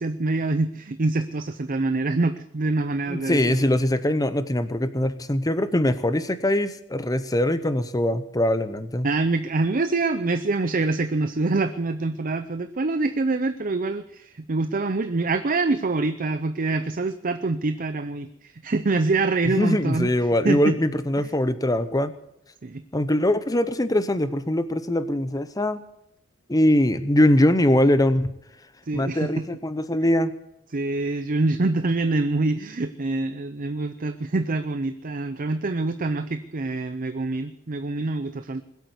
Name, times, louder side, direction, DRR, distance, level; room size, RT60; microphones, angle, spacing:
voice 1, 0.0-3.6 9.0-20.1 20.4-20.8 21.2-21.3 22.6-22.8 28.9-29.5 30.7-38.6, right 3 dB, 40° right, 10 dB, 0.6 m, -25 dB
voice 2, 3.1-9.1 19.5-22.1 22.9-25.8 26.5-28.3 28.9-30.3, left 1 dB, 15° left, 13 dB, 0.7 m, -22 dB
21.0 x 8.3 x 8.1 m, 0.83 s
head